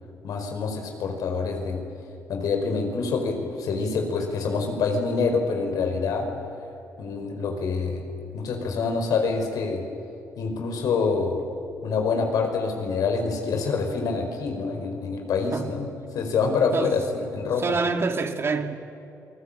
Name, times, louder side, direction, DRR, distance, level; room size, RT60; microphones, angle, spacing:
voice 1, 0.2-1.8 2.3-6.3 7.0-8.1 8.3-9.8 10.4-11.4 11.8-15.9 16.1-17.6, left 4 dB, 75° left, 4 dB, 4.9 m, -26 dB
voice 2, 17.6-18.7, right 4 dB, 40° right, 6 dB, 2.2 m, -26 dB
28.0 x 20.0 x 8.8 m, 2.8 s
cardioid pair, 85°, 6 cm